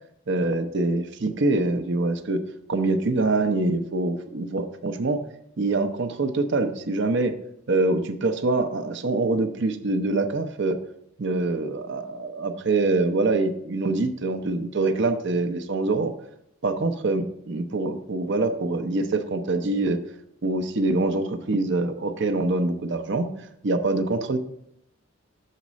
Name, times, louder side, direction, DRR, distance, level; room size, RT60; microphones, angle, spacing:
voice 1, 0.3-2.4 2.7-5.2 5.6-7.3 7.7-10.8 11.2-16.1 16.6-20.0 20.4-24.4, right 2 dB, 60° right, 8 dB, 0.7 m, -25 dB
6.6 x 4.1 x 6.1 m, 0.76 s
head